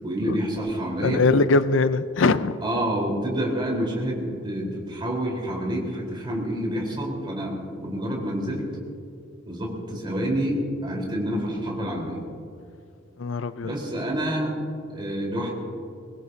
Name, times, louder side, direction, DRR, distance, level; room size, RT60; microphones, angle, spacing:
voice 1, 0.0-1.2 2.6-8.6 9.4-12.2 13.6-14.5 14.9-15.5, equal, 25° right, -2 dB, 4.2 m, -28 dB
voice 2, 1.0-2.6 13.2-13.7, left 3 dB, 75° left, 13 dB, 0.5 m, -21 dB
23.5 x 20.5 x 2.8 m, 2.4 s
head